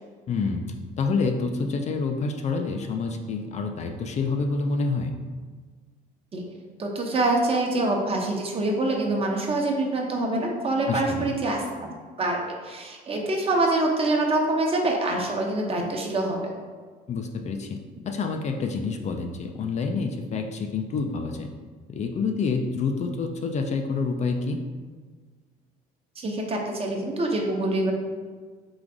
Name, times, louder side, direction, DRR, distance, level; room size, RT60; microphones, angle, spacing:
voice 1, 0.3-0.6 1.0-5.1 10.9-11.3 17.1-17.8 18.1-21.5 21.9-24.6, left 4 dB, 40° left, 4 dB, 0.4 m, -27 dB
voice 2, 6.8-11.9 12.2-16.5 26.1-27.9, right 2 dB, 35° right, 1 dB, 0.8 m, -25 dB
3.9 x 2.5 x 4.7 m, 1.5 s
cardioid pair, 95°, 17 cm